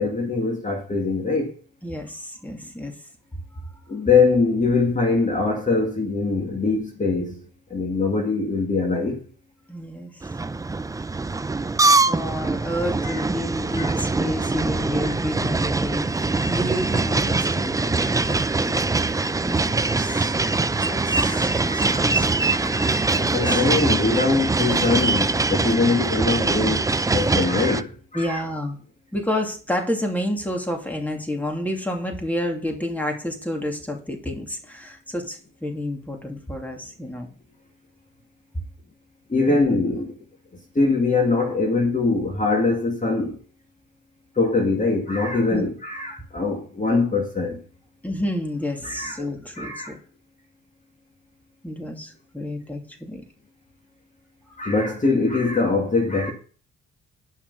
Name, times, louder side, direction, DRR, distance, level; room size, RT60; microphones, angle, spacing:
voice 1, 0.0-1.6 3.9-7.4 7.7-9.2 13.0-13.2 13.8-13.9 15.0-15.2 20.0-20.3 21.1-22.1 22.5-22.9 23.3-26.8 27.1-28.4 39.3-40.2 40.7-43.4 44.4-47.6 48.8-49.2 49.5-49.9 54.6-56.3, left 3 dB, 25° left, 2.2 m, -23 dB
voice 2, 1.8-2.9 3.8-3.9 9.7-10.3 11.9-16.1 16.4-23.6 28.1-28.8 29.1-37.3 39.5-39.6 45.5-45.7 48.0-50.0 51.6-53.2 54.5-54.6, left 1 dB, 5° left, 2.6 m, -30 dB
sound 1, 10.2-27.8, right 3 dB, 10° right, 0.4 m, -23 dB
10.5 x 5.9 x 5.5 m
cardioid pair, 90°, 30 cm